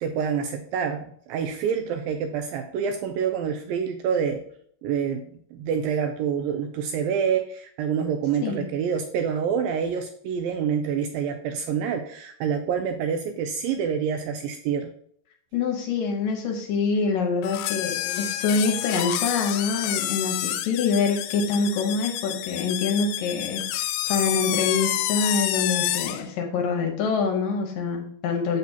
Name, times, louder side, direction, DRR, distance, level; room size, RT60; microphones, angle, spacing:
voice 1, 0.0-4.4 4.8-14.9, right 7 dB, 80° right, 6 dB, 2.1 m, -27 dB
voice 2, 15.5-28.6, left 5 dB, 70° left, 3 dB, 2.4 m, -25 dB
sound 1, 17.4-26.3, left 13 dB, 90° left, 2.6 m, -28 dB
7.6 x 7.1 x 2.8 m, 0.63 s
omnidirectional pair, 4.6 m